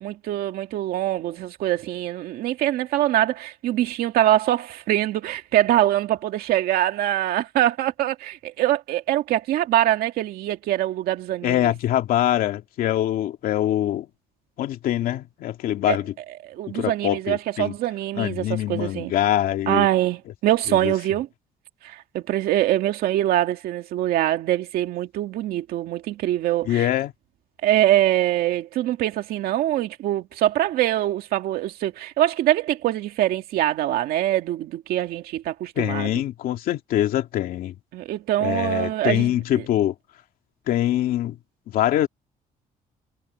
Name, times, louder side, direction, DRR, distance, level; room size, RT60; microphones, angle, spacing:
voice 1, 0.0-11.7 15.9-16.0 16.4-19.1 19.7-21.3 21.8-26.9 27.6-36.1 37.9-39.6, right 13 dB, 80° right, 2.2 m, -23 dB
voice 2, 11.4-14.1 14.6-16.1 16.7-17.7 18.2-19.9 20.7-20.9 26.6-27.1 35.8-37.8 38.4-39.9 40.7-41.4 41.7-42.1, left 12 dB, 70° left, 2.4 m, -24 dB
cardioid pair, 160°, 15 cm